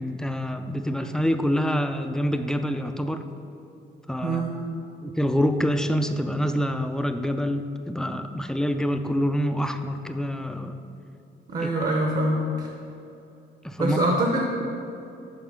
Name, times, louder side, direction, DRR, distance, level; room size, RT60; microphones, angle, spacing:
voice 1, 0.0-3.2 4.1-4.4 5.0-10.8 11.6-11.7 13.6-14.0, equal, 5° left, 7 dB, 0.4 m, -26 dB
voice 2, 4.2-4.5 11.5-12.7 13.8-14.4, right 1 dB, 45° right, 0 dB, 0.9 m, -24 dB
5.7 x 4.7 x 6.3 m, 2.7 s
cardioid pair, 90°, 20 cm